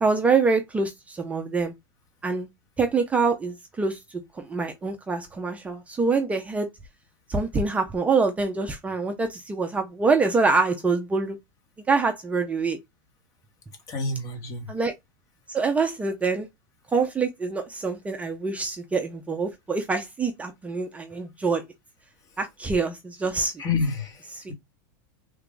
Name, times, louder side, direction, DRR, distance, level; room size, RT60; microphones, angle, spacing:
voice 1, 0.0-1.7 2.2-2.5 2.8-4.0 4.5-6.7 7.3-11.4 11.9-12.8 14.7-14.9 15.5-16.5 16.9-21.6 22.4-23.5 24.3-24.4, right 4 dB, 10° right, 0.5 m, -25 dB
voice 2, 13.9-14.7 23.6-24.2, left 4 dB, 30° left, 1.2 m, -28 dB
3.3 x 2.4 x 3.6 m
supercardioid pair, 135°, 11 cm